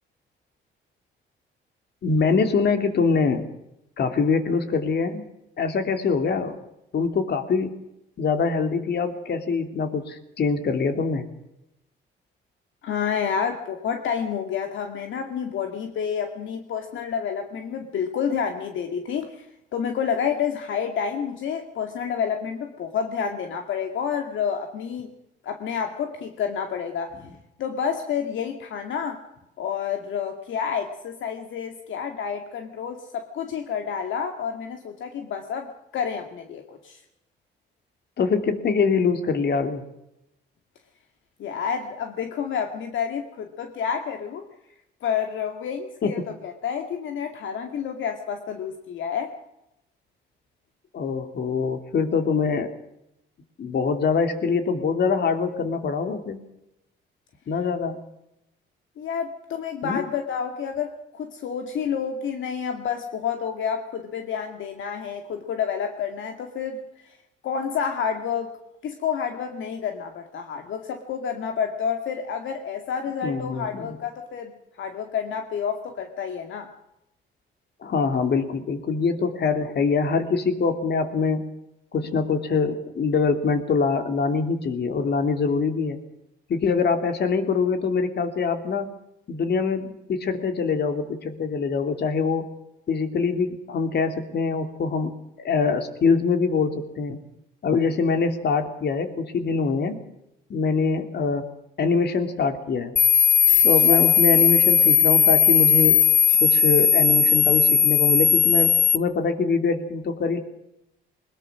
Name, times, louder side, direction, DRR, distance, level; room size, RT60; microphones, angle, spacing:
voice 1, 2.0-3.4 4.0-5.2 5.6-6.6 6.9-7.7 8.2-11.2 38.2-39.8 46.0-46.2 50.9-52.7 53.6-56.4 57.5-58.0 59.8-60.0 73.2-74.0 77.8-81.4 81.9-86.0 86.5-88.9 89.3-92.5 92.9-97.2 97.6-100.0 100.5-101.5 101.8-102.9 103.6-106.0 106.4-110.4, left 5 dB, 55° left, 7 dB, 3.2 m, -24 dB
voice 2, 12.8-19.5 19.7-25.1 25.4-27.1 27.6-29.2 29.6-37.0 41.4-44.4 45.0-49.4 59.0-67.2 67.4-68.5 68.8-74.5 74.8-76.7 103.9-104.0, left 7 dB, 75° left, 5 dB, 2.2 m, -29 dB
sound 1, 103.0-109.0, left 7 dB, 40° left, 1.1 m, -17 dB
22.0 x 21.0 x 6.3 m, 0.85 s
cardioid pair, 90°, 20 cm